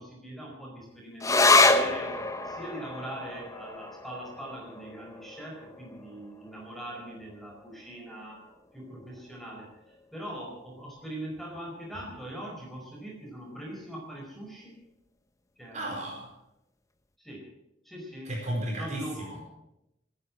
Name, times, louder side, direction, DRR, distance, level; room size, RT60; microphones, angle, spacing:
voice 1, 0.0-2.2 2.4-8.4 8.7-14.8 15.6-16.0 17.2-17.5 17.8-18.3 18.8-19.4, right 1 dB, ahead, -1 dB, 4.8 m, -41 dB
sound 1, 1.2-8.0 8.3-8.4 8.7-9.4 10.0-10.1, left 3 dB, 15° left, 1.0 m, -27 dB
voice 2, 15.7-16.3 18.2-19.5, right 1 dB, 40° right, 0 dB, 4.6 m, -34 dB
17.0 x 10.5 x 7.6 m, 0.86 s
head